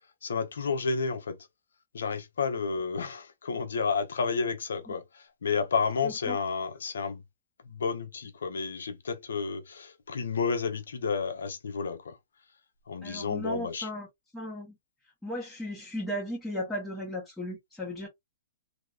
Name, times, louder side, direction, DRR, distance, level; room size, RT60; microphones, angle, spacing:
voice 1, 0.2-1.4 1.9-7.2 7.6-12.2 12.9-13.9, left 5 dB, 75° left, 1.0 m, -31 dB
voice 2, 6.0-6.4 13.0-14.1 14.3-14.7 15.2-18.1, equal, 5° left, 1.3 m, -36 dB
3.0 x 2.9 x 2.5 m
hypercardioid pair, 125°, 0 cm